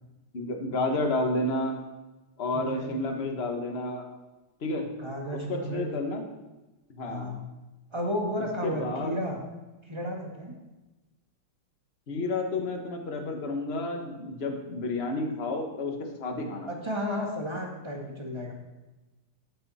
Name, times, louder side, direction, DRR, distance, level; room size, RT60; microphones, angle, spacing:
voice 1, 0.3-1.7 2.4-4.0 4.6-4.9 5.3-6.2 6.9-7.3 8.6-9.2 12.1-16.7, left 2 dB, 35° left, 3 dB, 1.3 m, -30 dB
voice 2, 2.5-2.9 5.0-5.9 7.1-7.4 7.9-9.4 9.8-10.5 16.7-18.5, equal, 15° right, 0 dB, 1.6 m, -33 dB
13.5 x 8.3 x 4.3 m, 1.1 s
omnidirectional pair, 2.4 m